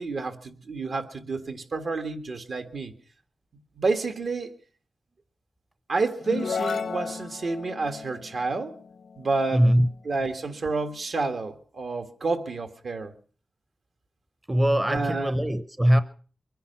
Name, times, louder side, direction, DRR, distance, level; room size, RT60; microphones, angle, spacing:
voice 1, 0.0-2.9 3.8-4.5 5.9-8.8 9.2-9.6 10.0-13.1 14.9-15.3, right 3 dB, 65° right, 1.7 m, -29 dB
sound 1, 6.2-9.8, left 5 dB, 85° left, 0.8 m, -34 dB
voice 2, 9.5-9.9 14.5-16.0, equal, 15° right, 0.7 m, -21 dB
23.5 x 10.5 x 5.7 m
wide cardioid pair, 120°, 0 cm